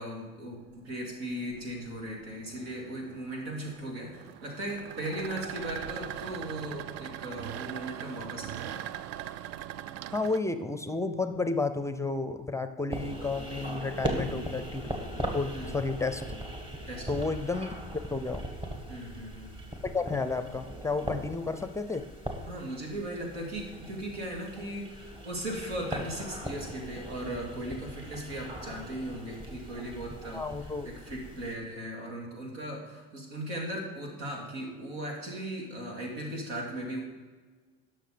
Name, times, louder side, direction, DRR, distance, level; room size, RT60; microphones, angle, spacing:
voice 1, 0.0-8.9 14.0-14.5 15.5-15.8 16.9-17.2 18.9-19.6 22.5-30.4 30.8-37.0, right 1 dB, 90° right, 0 dB, 2.7 m, -38 dB
sound 1, 0.6-10.4, right 12 dB, 55° right, 0.4 m, -41 dB
voice 2, 10.1-14.9 15.3-16.2 17.1-18.4 19.8-22.1 30.3-30.9, left 3 dB, 10° left, 10 dB, 0.6 m, -32 dB
sound 2, 12.9-31.6, right 1 dB, 15° right, 1.8 m, -39 dB
11.5 x 6.2 x 5.0 m, 1.4 s
supercardioid pair, 95°, 30 cm